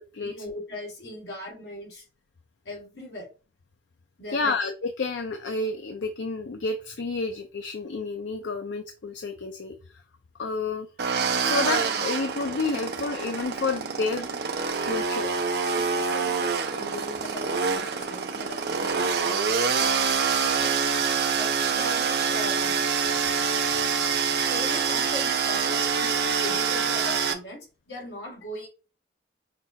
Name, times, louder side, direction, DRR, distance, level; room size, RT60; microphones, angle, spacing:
voice 1, 0.2-2.1 2.7-3.3 4.2-4.6 15.7-19.8 20.6-20.8 21.3-22.8 23.5-23.6 24.4-28.7, left 1 dB, 75° left, 1.9 m, -39 dB
voice 2, 4.3-10.0 10.4-10.9 11.4-14.3 14.8-15.3, left 3 dB, 90° left, 0.5 m, -30 dB
sound 1, 11.0-27.3, right 5 dB, 65° right, 0.6 m, -26 dB
5.9 x 2.3 x 2.7 m
head